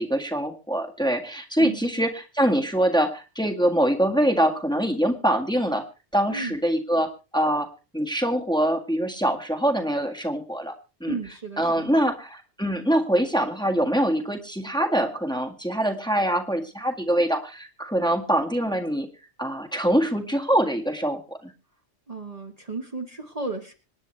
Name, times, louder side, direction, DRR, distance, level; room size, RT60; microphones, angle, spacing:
voice 1, 0.0-5.8 6.1-7.7 7.9-10.7 11.0-11.2 11.6-19.1 19.4-21.5, right 1 dB, 5° left, 3 dB, 1.7 m, -24 dB
voice 2, 1.6-1.9 6.3-6.6 11.1-12.0 22.1-23.7, right 3 dB, 35° right, 3 dB, 1.4 m, -34 dB
26.0 x 9.6 x 3.2 m, 0.32 s
omnidirectional pair, 1.1 m